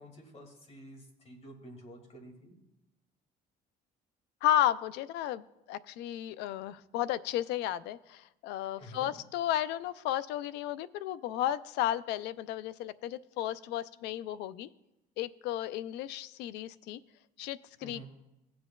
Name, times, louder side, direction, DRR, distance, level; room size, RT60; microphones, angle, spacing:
voice 1, 0.0-2.6 8.8-9.1 17.8-18.0, right 1 dB, 35° left, 3 dB, 2.2 m, -50 dB
voice 2, 4.4-14.7 15.2-17.0 17.4-18.0, left 12 dB, 85° left, 17 dB, 0.4 m, -33 dB
17.0 x 7.7 x 2.3 m, 0.93 s
cardioid pair, 110°, 17 cm